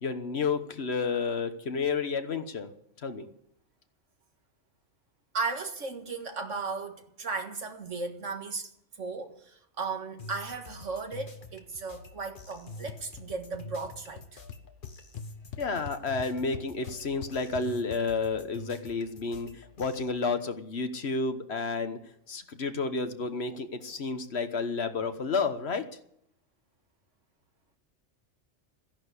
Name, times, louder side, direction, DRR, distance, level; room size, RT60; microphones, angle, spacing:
voice 1, 0.0-2.7 3.0-3.3 15.6-22.0 22.3-25.9, left 4 dB, 60° left, 1.5 m, -31 dB
voice 2, 5.3-8.7 9.0-14.4, right 4 dB, 85° right, 2.1 m, -36 dB
sound 1, 10.2-20.1, left 2 dB, 45° left, 1.4 m, -47 dB
sound 2, 12.9-13.3 13.5-13.9 14.2-14.3 14.5-18.0, left 8 dB, 80° left, 1.1 m, -42 dB
14.5 x 11.0 x 8.3 m
omnidirectional pair, 1.2 m